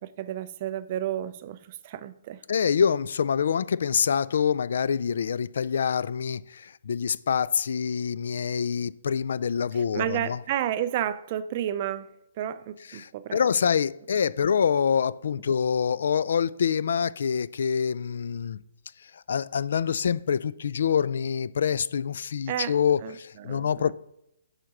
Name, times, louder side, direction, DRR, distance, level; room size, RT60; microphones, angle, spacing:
voice 1, 0.0-2.4 9.7-12.1 12.4-13.4 22.5-22.7 23.0-23.2 23.4-23.7, right 11 dB, 25° right, 15 dB, 0.4 m, -31 dB
voice 2, 2.5-10.4 12.9-18.6 19.0-23.9, left 7 dB, 55° left, 19 dB, 0.4 m, -26 dB
7.5 x 6.5 x 5.9 m, 0.81 s
hypercardioid pair, 175°, 0 cm